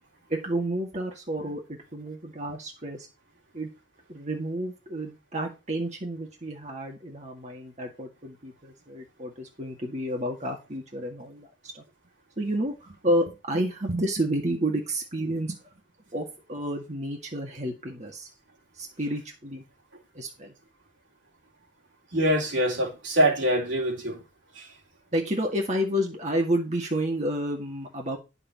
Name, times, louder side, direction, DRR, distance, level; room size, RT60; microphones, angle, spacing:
voice 1, 0.3-3.1 3.5-3.7 4.1-11.8 12.4-15.7 16.1-18.3 18.7-19.6 20.1-20.5 25.1-28.2, right 1 dB, 35° right, 2.0 m, -30 dB
voice 2, 22.1-24.2 24.6-24.7, equal, 70° right, 3.5 m, -24 dB
10.0 x 7.0 x 4.1 m
head